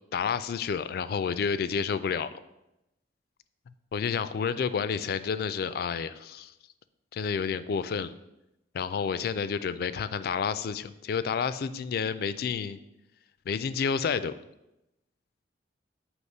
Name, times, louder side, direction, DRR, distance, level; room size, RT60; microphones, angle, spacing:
voice 1, 0.1-2.4 3.9-6.5 7.1-8.1 8.7-12.8 13.5-14.3, left 6 dB, 55° left, 14 dB, 0.3 m, -30 dB
7.9 x 3.0 x 5.3 m, 0.92 s
head